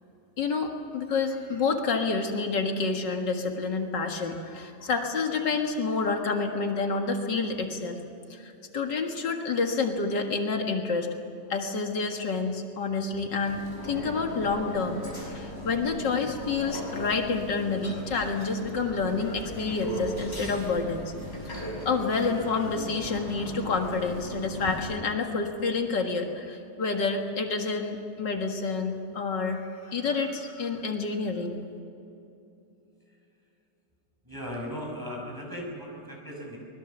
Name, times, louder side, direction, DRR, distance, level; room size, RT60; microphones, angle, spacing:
voice 1, 0.4-8.0 8.3-11.1 11.5-21.1 21.5-31.6, left 4 dB, 80° left, 3 dB, 2.4 m, -29 dB
sound 1, 13.4-25.0, equal, 25° left, 6.1 m, -37 dB
voice 2, 34.3-36.6, equal, 10° right, -1 dB, 6.0 m, -37 dB
24.5 x 21.0 x 7.3 m, 2.8 s
omnidirectional pair, 1.9 m